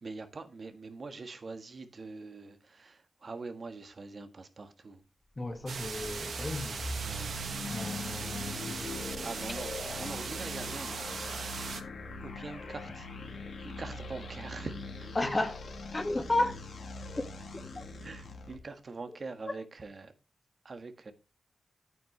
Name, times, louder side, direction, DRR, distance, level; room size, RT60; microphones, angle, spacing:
voice 1, 0.0-5.0 7.0-7.9 9.2-11.3 11.7-11.9 12.2-15.1 18.0-20.1 20.6-21.1, right 3 dB, 55° right, 1.5 m, -44 dB
sound 1, 5.3-18.5, left 2 dB, 75° left, 2.1 m, -42 dB
voice 2, 5.4-6.8 7.6-8.9 15.2-15.6 15.9-16.5 17.8-17.9, left 2 dB, 30° left, 1.9 m, -33 dB
sound 2, 5.7-11.8, right 5 dB, 75° right, 1.1 m, -39 dB
9.6 x 8.9 x 3.3 m
cardioid pair, 55°, 0 cm